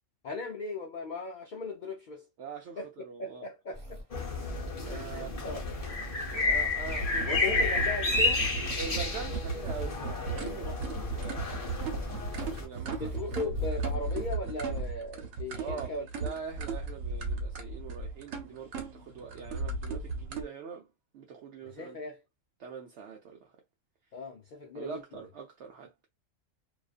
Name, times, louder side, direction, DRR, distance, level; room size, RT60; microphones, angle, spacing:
voice 1, 0.2-2.3 2.8-2.9 3.2-4.0 4.9-5.6 7.3-8.5 12.8-16.1 21.6-22.2 24.1-25.0, left 3 dB, 60° left, 0.5 m, -38 dB
voice 2, 2.4-3.5 4.8-5.3 6.3-7.5 8.7-13.2 15.6-20.9 21.1-22.0 22.6-23.5 24.7-26.1, right 6 dB, 65° right, 0.8 m, -43 dB
sound 1, 3.7-14.3, right 2 dB, 25° right, 1.2 m, -44 dB
sound 2, 4.1-12.6, left 3 dB, 35° left, 0.8 m, -31 dB
sound 3, 6.8-20.4, right 3 dB, 90° right, 1.1 m, -36 dB
2.4 x 2.3 x 2.4 m
omnidirectional pair, 1.3 m